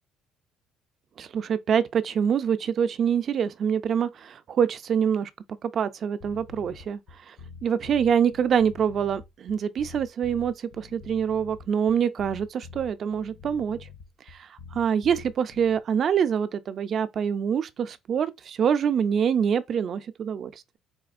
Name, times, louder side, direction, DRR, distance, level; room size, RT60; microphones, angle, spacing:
voice 1, 1.2-5.3 5.6-7.4 7.6-13.9 14.3-20.8, right 7 dB, 45° right, 0.3 m, -25 dB
sound 1, 6.2-15.8, left 5 dB, 60° left, 0.6 m, -46 dB
4.1 x 2.9 x 2.4 m
cardioid pair, 130°, 0 cm